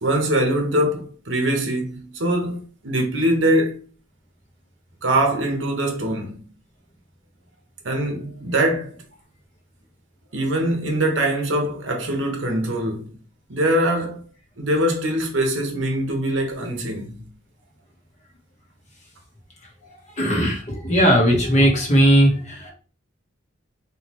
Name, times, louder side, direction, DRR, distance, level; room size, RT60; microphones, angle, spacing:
voice 1, 0.0-3.8 5.0-6.5 7.8-9.0 10.3-13.1 13.5-14.2 14.6-17.3, right 1 dB, 80° right, 1.1 m, -23 dB
voice 2, 20.2-22.7, equal, 35° left, 1.1 m, -17 dB
4.0 x 3.2 x 3.0 m
head